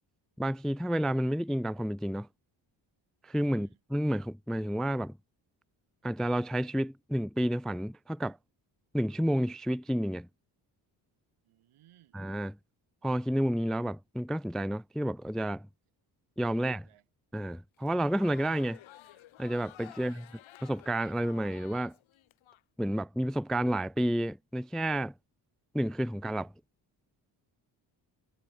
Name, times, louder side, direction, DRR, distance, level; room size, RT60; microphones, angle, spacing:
voice 1, 0.4-2.3 3.2-5.2 6.0-8.4 8.9-10.3 12.1-12.5 13.0-15.7 16.4-16.8 17.3-18.8 19.4-20.1 20.6-21.9 22.8-25.1 25.7-26.5, right 1 dB, ahead, 0.4 m, -30 dB
voice 2, 3.5-3.8 11.4-12.2 16.5-17.1 20.0-20.3, right 13 dB, 80° right, 7.4 m, -63 dB
Crowd, 17.8-22.6, left 13 dB, 70° left, 1.5 m, -53 dB
supercardioid pair, 55°, 49 cm